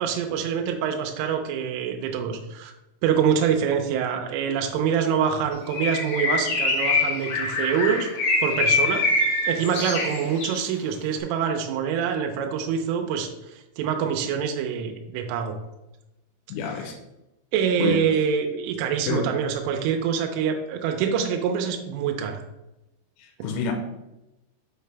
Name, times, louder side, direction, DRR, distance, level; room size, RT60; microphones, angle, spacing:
voice 1, 0.0-2.7 3.0-8.1 8.4-9.0 9.5-15.6 17.5-22.4, right 7 dB, 85° right, 3.2 m, -25 dB
Bird, 5.7-10.6, left 3 dB, 65° left, 2.3 m, -24 dB
voice 2, 16.5-17.0 17.8-18.0 19.1-19.2 23.2-23.7, left 5 dB, 80° left, 3.2 m, -28 dB
6.7 x 5.5 x 3.4 m
omnidirectional pair, 5.6 m